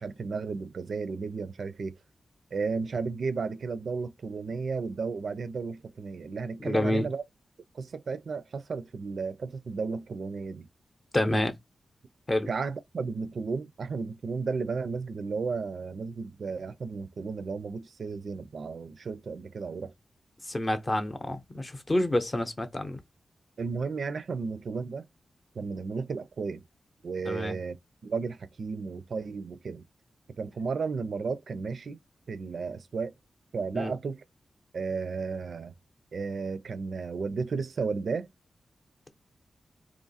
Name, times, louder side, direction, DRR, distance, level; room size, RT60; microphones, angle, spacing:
voice 1, 0.0-1.9 2.5-7.2 7.7-10.7 12.5-19.9 23.6-25.1 25.6-26.6 27.0-27.8 28.0-29.8 30.4-32.0 32.3-33.1 33.5-34.2 34.7-35.7 36.1-38.3, right 4 dB, 65° right, 0.4 m, -33 dB
voice 2, 6.6-7.1 11.1-11.5 12.3-12.5 20.4-23.0 27.2-27.6 33.7-33.9, left 1 dB, 25° left, 0.7 m, -28 dB
3.0 x 2.5 x 4.0 m
wide cardioid pair, 110°, 0 cm